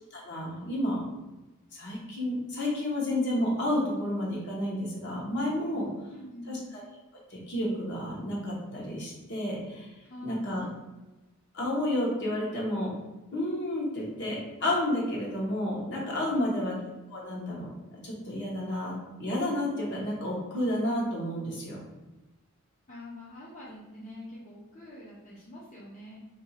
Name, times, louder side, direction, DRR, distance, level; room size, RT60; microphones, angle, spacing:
voice 1, 0.1-1.0 1.7-5.9 6.5-6.8 7.3-10.7 11.5-12.9 13.3-16.7 17.1-18.9 19.2-21.8, left 1 dB, 55° left, -3 dB, 1.1 m, -31 dB
voice 2, 5.8-6.6 10.0-10.6 16.3-16.7 22.9-26.2, left 1 dB, 35° left, -7 dB, 0.7 m, -45 dB
2.8 x 2.7 x 4.1 m, 1.1 s
head